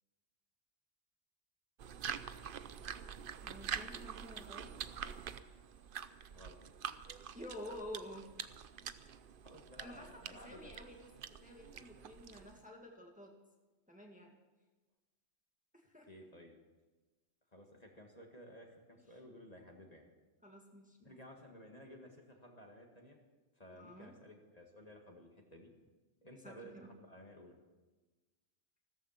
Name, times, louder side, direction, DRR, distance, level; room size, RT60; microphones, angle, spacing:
sound 1, 1.8-12.7, right 8 dB, 55° right, 0.8 m, -46 dB
voice 1, 3.4-4.8 7.3-8.2 9.8-11.0 11.4-13.3 13.9-14.4 15.7-16.1 20.4-21.2 23.7-24.1 26.4-26.9, equal, 5° right, 0 dB, 1.8 m, -50 dB
voice 2, 9.4-10.7 16.1-16.6 17.5-20.1 21.0-23.2 23.6-25.7 26.2-27.6, equal, 35° left, 1 dB, 2.0 m, -55 dB
15.5 x 14.0 x 5.8 m, 1.2 s
omnidirectional pair, 1.2 m